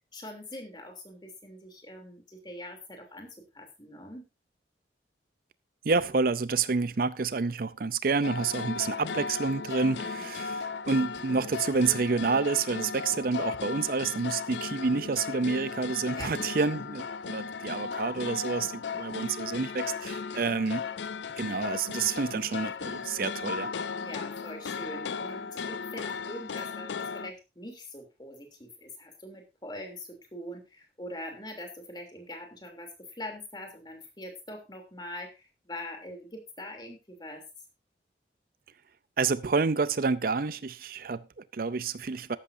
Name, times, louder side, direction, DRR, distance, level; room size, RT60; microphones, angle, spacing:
voice 1, 0.1-4.2 9.8-10.3 16.1-16.3 24.0-37.4, left 1 dB, 25° left, 3.0 m, -43 dB
voice 2, 5.8-20.8 21.4-23.7 39.2-42.4, right 4 dB, 55° right, 0.5 m, -29 dB
sound 1, 8.2-27.3, left 5 dB, 80° left, 0.5 m, -36 dB
14.0 x 11.5 x 2.7 m
head